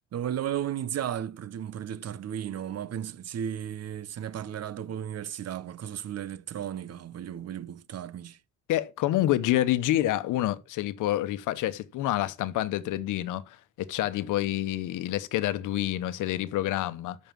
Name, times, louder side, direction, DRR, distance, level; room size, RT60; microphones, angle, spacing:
voice 1, 0.1-8.4, right 10 dB, 55° right, 0.9 m, -34 dB
voice 2, 8.7-17.2, left 14 dB, 90° left, 1.0 m, -28 dB
9.0 x 6.6 x 7.3 m
cardioid pair, 90°, 30 cm